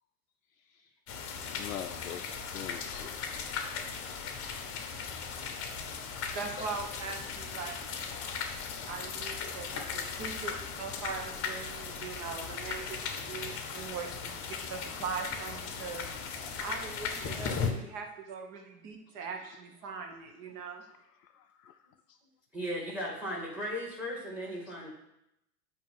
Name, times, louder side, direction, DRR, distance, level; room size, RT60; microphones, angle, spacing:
sound 1, 1.1-17.7, left 6 dB, 30° left, 1.0 m, -37 dB
voice 1, 1.4-3.2 8.7-8.9 21.7-21.8, left 10 dB, 65° left, 6 dB, 0.5 m, -42 dB
voice 2, 6.3-7.8 8.0-8.1 8.9-14.3 14.7-16.1 16.4-20.9, right 5 dB, 40° right, 4 dB, 1.2 m, -41 dB
voice 3, 22.5-24.9, equal, 5° right, -2 dB, 2.5 m, -36 dB
8.6 x 3.0 x 5.6 m, 0.84 s
figure-of-eight pair, 95°, 48 cm